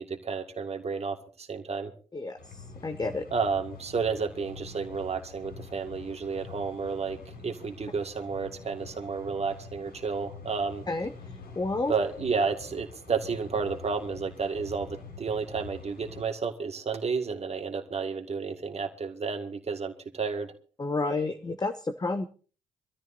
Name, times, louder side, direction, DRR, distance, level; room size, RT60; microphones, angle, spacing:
voice 1, 0.0-1.9 3.3-10.8 11.9-20.5, right 5 dB, 40° right, 5 dB, 2.1 m, -31 dB
sound 1, 2.4-16.2, left 3 dB, 70° left, 7.3 m, -46 dB
voice 2, 2.8-3.2 10.9-11.1 11.6-11.9 20.8-22.3, left 3 dB, 25° left, 8 dB, 1.1 m, -30 dB
26.0 x 13.5 x 2.7 m, 0.38 s
hypercardioid pair, 45°, 17 cm